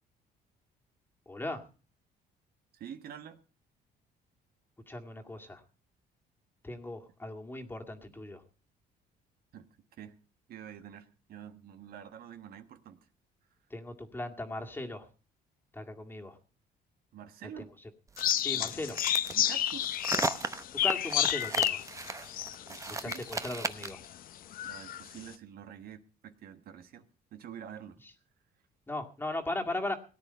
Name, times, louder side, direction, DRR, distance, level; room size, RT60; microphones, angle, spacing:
voice 1, 1.3-1.6 4.9-5.6 6.6-8.4 13.7-15.1 15.7-16.4 17.6-17.7 18.4-19.0 20.7-21.8 22.9-24.0 28.9-29.9, left 2 dB, 10° left, 2 dB, 2.1 m, -38 dB
voice 2, 2.7-3.4 9.5-9.7 10.0-10.2 10.5-13.1 17.1-17.7 18.5-18.8 19.3-20.0 22.7-23.2 24.6-28.0, right 9 dB, 65° right, 8 dB, 1.4 m, -47 dB
sound 1, 18.1-24.1, right 3 dB, 20° right, 0.8 m, -36 dB
sound 2, 18.2-23.4 23.9-24.0 24.5-25.0, left 12 dB, 55° left, 0.7 m, -30 dB
18.0 x 9.5 x 5.6 m, 0.38 s
cardioid pair, 110°, 17 cm